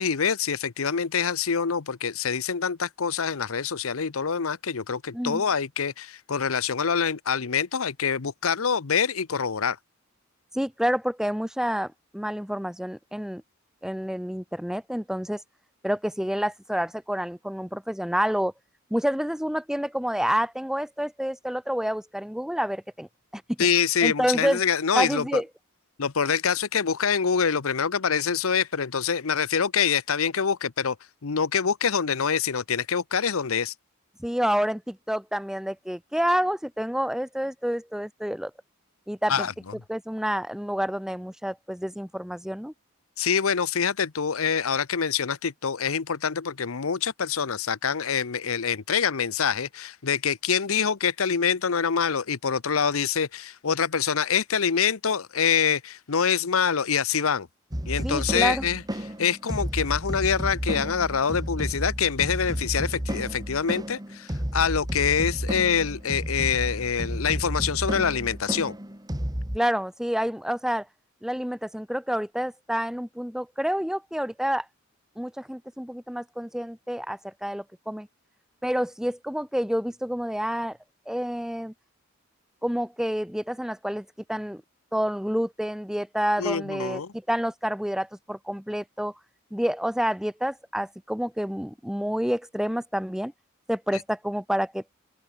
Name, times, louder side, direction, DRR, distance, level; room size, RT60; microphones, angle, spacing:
voice 1, 0.0-9.8 23.6-25.4 26.0-31.0 31.2-33.7 39.3-39.5 43.2-57.5 57.9-58.8 59.2-68.7 86.4-87.1, left 6 dB, 85° left, 0.8 m, -25 dB
voice 2, 10.5-13.4 13.8-15.4 15.8-18.5 18.9-23.1 23.3-23.6 24.0-24.6 24.9-25.4 34.2-38.5 39.1-39.5 39.9-42.7 58.0-58.6 69.5-70.9 71.2-74.6 75.2-78.1 78.6-80.8 81.1-81.7 82.6-84.6 84.9-89.1 89.5-93.3 93.7-94.8, equal, 5° right, 1.7 m, -28 dB
sound 1, 57.7-69.6, equal, 20° right, 3.0 m, -32 dB
open air
head